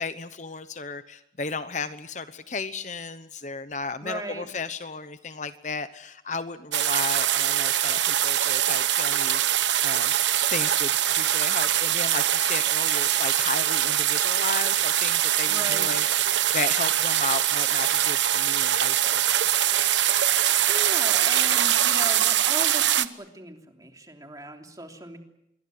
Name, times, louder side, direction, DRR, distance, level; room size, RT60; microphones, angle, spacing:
voice 1, 0.0-10.1 10.5-19.3, left 4 dB, 40° left, 12 dB, 1.0 m, -34 dB
voice 2, 4.0-4.5 15.5-15.9 20.7-25.2, right 1 dB, 20° right, 4 dB, 3.2 m, -37 dB
sound 1, 6.7-23.1, right 11 dB, 85° right, 1.1 m, -23 dB
27.0 x 23.0 x 7.8 m, 0.80 s
head